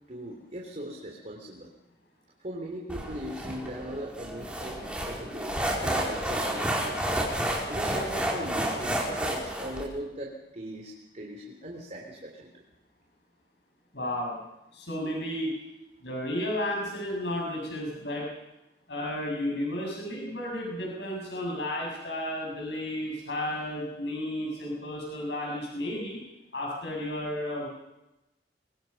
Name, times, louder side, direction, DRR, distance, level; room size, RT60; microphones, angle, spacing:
voice 1, 0.1-1.7 2.4-7.0 7.7-12.6, right 1 dB, 40° right, 0 dB, 3.3 m, -39 dB
sound 1, 2.9-9.8, right 1 dB, 5° right, 4.5 m, -30 dB
voice 2, 13.9-14.4 14.7-15.5 16.0-18.3 18.9-26.2 26.5-27.7, left 1 dB, 75° left, -1 dB, 7.1 m, -33 dB
24.0 x 23.0 x 5.4 m, 0.96 s
head